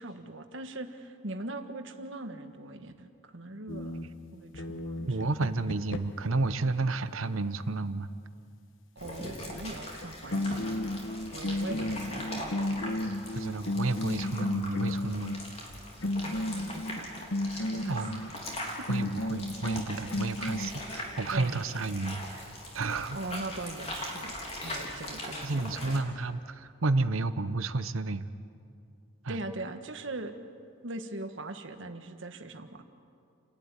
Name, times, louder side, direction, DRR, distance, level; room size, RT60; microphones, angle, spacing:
voice 1, 0.0-5.2 8.9-10.7 11.3-13.0 16.2-17.1 17.8-18.1 18.6-18.9 21.3-21.6 23.1-24.4 24.6-26.0 29.3-30.3 30.8-32.8, right 2 dB, 65° right, 6 dB, 1.5 m, -41 dB
sound 1, 3.7-6.4 9.9-10.0 10.3-15.4 16.0-18.3 18.9-20.7, left 1 dB, 70° left, 1.1 m, -33 dB
voice 2, 5.0-8.1 13.0-15.3 17.9-18.2 18.9-22.4 22.7-23.2 25.4-28.2 29.2-29.4, right 3 dB, 85° right, 12 dB, 0.9 m, -31 dB
sound 2, 9.0-26.0, left 1 dB, 30° left, 3.5 m, -41 dB
30.0 x 12.0 x 9.8 m, 2.4 s
head